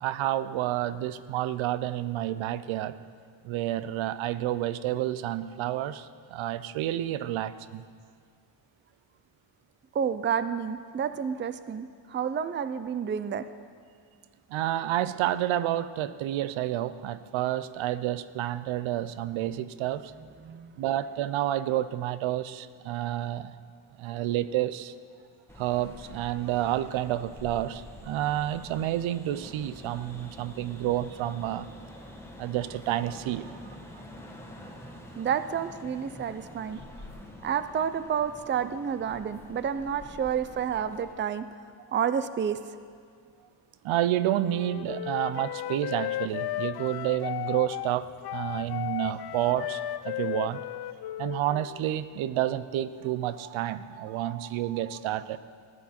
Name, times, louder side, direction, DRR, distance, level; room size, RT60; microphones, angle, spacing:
voice 1, 0.0-2.9 3.4-7.8 14.5-20.1 20.8-23.5 24.0-24.9 25.6-31.7 32.4-33.6 38.6-38.7 43.8-50.6 51.2-55.4, right 13 dB, 85° right, 15 dB, 0.6 m, -29 dB
voice 2, 9.9-13.5 20.4-20.7 35.1-36.8 37.4-41.4 41.9-42.6, right 8 dB, 25° right, 12 dB, 0.5 m, -30 dB
sound 1, 25.5-41.1, left 1 dB, 5° left, 1.5 m, -47 dB
Wind instrument woodwind instrument, 44.4-51.9, left 14 dB, 55° left, 0.5 m, -35 dB
17.0 x 9.9 x 4.3 m, 2.1 s
cardioid pair, 90°, 46 cm